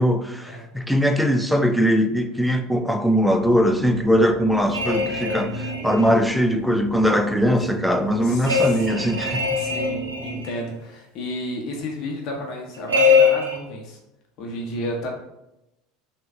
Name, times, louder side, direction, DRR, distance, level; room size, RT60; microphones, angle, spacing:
voice 1, 0.0-9.4, equal, ahead, 0.3 m, -20 dB
sound 1, 3.2-10.4, right 2 dB, 20° right, 0.8 m, -35 dB
sound 2, 4.7-6.1 8.5-10.6 12.9-13.6, left 5 dB, 80° right, 0.6 m, -22 dB
voice 2, 8.2-9.0 9.6-14.0 14.4-15.1, left 1 dB, 50° left, 0.7 m, -33 dB
3.2 x 2.2 x 3.4 m
figure-of-eight pair, 70°, 0 cm